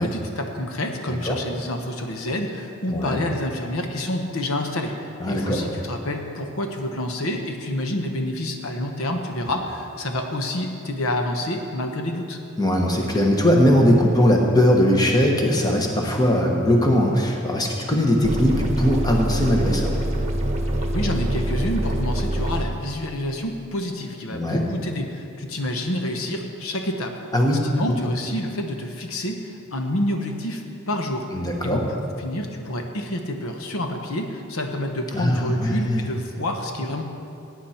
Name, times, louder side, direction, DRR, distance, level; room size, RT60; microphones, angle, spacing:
voice 1, 0.0-12.4 20.9-27.2 27.7-31.3 31.6-31.8 32.2-37.0, left 1 dB, 70° left, 4 dB, 1.0 m, -28 dB
voice 2, 2.9-3.2 5.2-5.6 12.6-19.9 24.3-24.6 27.3-27.7 31.3-31.8 35.1-36.0, equal, 20° left, 0 dB, 1.3 m, -20 dB
sound 1, 18.2-22.6, right 1 dB, 30° right, 1.1 m, -25 dB
17.0 x 9.5 x 4.4 m, 2.6 s
head